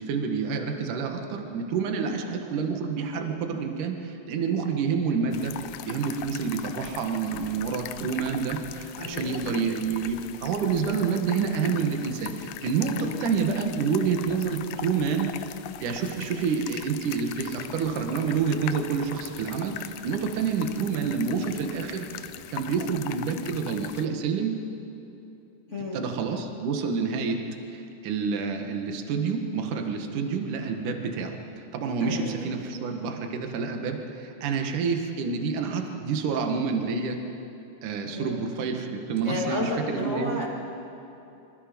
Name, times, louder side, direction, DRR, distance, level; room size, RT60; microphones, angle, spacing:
voice 1, 0.0-5.5 5.9-15.3 15.8-24.6 25.9-27.4 27.7-37.2 37.8-40.4, right 5 dB, 55° right, 4 dB, 2.7 m, -28 dB
sound 1, 5.3-24.1, left 12 dB, 85° left, 2.1 m, -40 dB
voice 2, 9.0-9.8 12.9-13.2 25.7-26.0 32.0-32.3 38.1-38.5 39.2-40.5, left 1 dB, 25° left, -4 dB, 1.8 m, -32 dB
26.5 x 25.0 x 5.4 m, 2.9 s
omnidirectional pair, 5.0 m